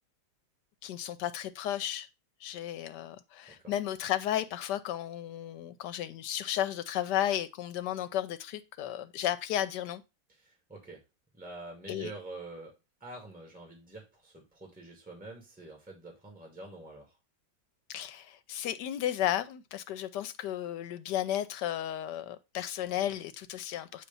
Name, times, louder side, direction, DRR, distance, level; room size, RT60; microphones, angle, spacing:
voice 1, 0.8-2.1 2.4-10.0 11.9-12.1 17.9-24.1, left 12 dB, 75° left, 1.2 m, -33 dB
voice 2, 10.4-11.0 11.3-17.1, right 2 dB, 5° right, 2.0 m, -46 dB
8.2 x 3.1 x 5.3 m
omnidirectional pair, 2.0 m